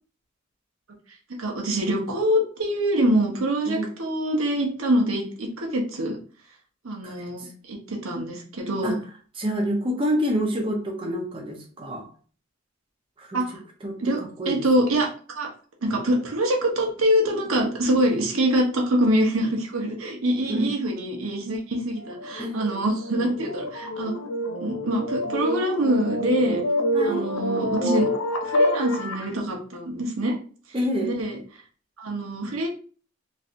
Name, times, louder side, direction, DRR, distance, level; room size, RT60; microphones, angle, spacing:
voice 1, 1.4-6.2 6.8-9.0 13.3-13.6 14.0-14.2 14.4-15.1 15.4-15.5 15.8-24.2 24.6-26.6 27.0-28.1 28.4-30.3 31.0-31.4 32.0-32.7, right 1 dB, 85° right, 1 dB, 0.9 m, -24 dB
voice 2, 9.4-12.0 13.3-13.4 13.8-14.6 20.5-20.7 22.4-22.6 26.9-27.3 30.7-31.1, equal, 25° right, 1 dB, 0.7 m, -27 dB
sound 1, 22.0-29.3, equal, 70° left, 0.6 m, -27 dB
3.2 x 2.6 x 2.6 m, 0.40 s
head